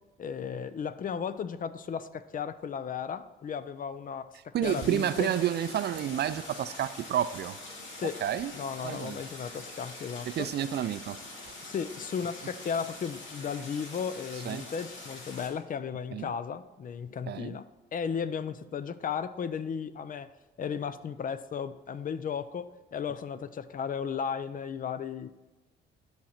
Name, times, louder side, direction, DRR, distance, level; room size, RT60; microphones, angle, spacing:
voice 1, 0.2-5.3 8.0-8.2 8.5-10.5 11.6-17.7 17.9-20.3 20.6-25.3, left 7 dB, 45° left, 13 dB, 0.5 m, -35 dB
voice 2, 4.5-7.6 8.2-8.5 8.8-9.2 10.3-11.2 14.5-14.6 16.1-16.3 17.3-17.6, right 10 dB, 55° right, 13 dB, 0.4 m, -30 dB
Stream, 4.6-15.5, left 2 dB, 75° left, 2.0 m, -44 dB
10.5 x 6.0 x 4.2 m, 1.2 s
cardioid pair, 90°, 20 cm